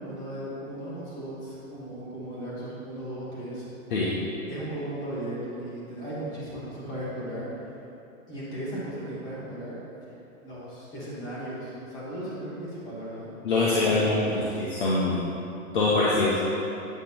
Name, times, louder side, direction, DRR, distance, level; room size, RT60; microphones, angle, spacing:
voice 1, 0.0-3.7 4.5-7.5 8.3-9.8 10.4-13.3 13.6-14.6, right 1 dB, 10° left, -9 dB, 0.9 m, -36 dB
voice 2, 13.4-15.2 15.7-16.4, left 2 dB, 40° left, -6 dB, 0.6 m, -24 dB
8.2 x 2.9 x 5.3 m, 2.8 s
hypercardioid pair, 170°, 43 cm